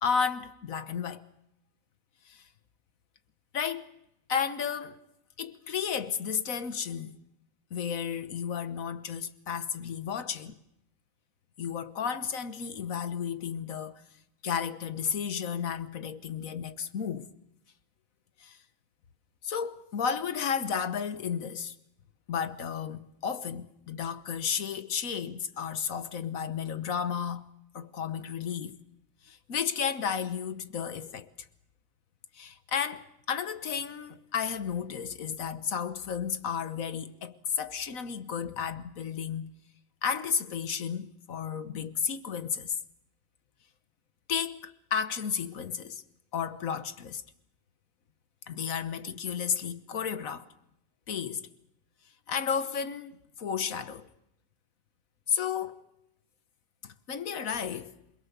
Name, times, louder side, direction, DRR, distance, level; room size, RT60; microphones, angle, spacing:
voice 1, 0.0-1.2 2.2-2.5 3.5-3.9 4.3-5.0 5.4-7.2 7.7-10.6 11.6-14.0 14.4-17.3 18.4-18.6 19.4-21.7 22.3-27.5 27.7-28.8 29.2-31.3 32.3-39.6 40.0-42.8 44.3-46.0 46.3-47.2 48.5-50.5 51.1-51.5 52.3-54.1 55.3-55.8 56.8-58.0, left 7 dB, 85° left, 1.6 m, -33 dB
27.0 x 21.5 x 6.9 m
omnidirectional pair, 1.4 m